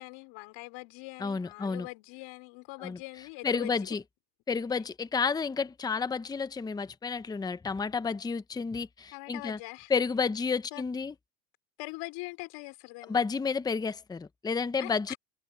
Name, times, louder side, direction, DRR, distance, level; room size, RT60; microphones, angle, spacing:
voice 1, 0.0-4.0 9.1-9.9 10.7-10.8 11.8-13.2 14.8-15.2, left 24 dB, 60° left, 4.6 m, -43 dB
voice 2, 1.2-1.9 2.8-3.0 3.4-4.0 4.5-9.6 9.9-11.1 13.1-15.1, left 5 dB, 10° left, 0.7 m, -31 dB
supercardioid pair, 110°, 47 cm